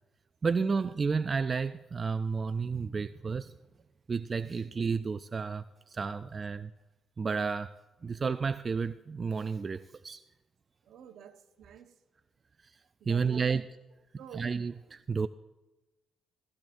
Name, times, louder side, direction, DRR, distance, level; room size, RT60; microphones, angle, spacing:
voice 1, 0.4-3.5 4.1-6.7 7.2-10.2 12.6-12.8 13.1-13.7 14.3-15.3, right 5 dB, 35° right, 0.3 m, -31 dB
voice 2, 10.8-11.9 13.0-13.6 14.2-14.5, right 9 dB, 70° right, 1.1 m, -49 dB
15.5 x 15.5 x 2.6 m
cardioid pair, 90°, 0 cm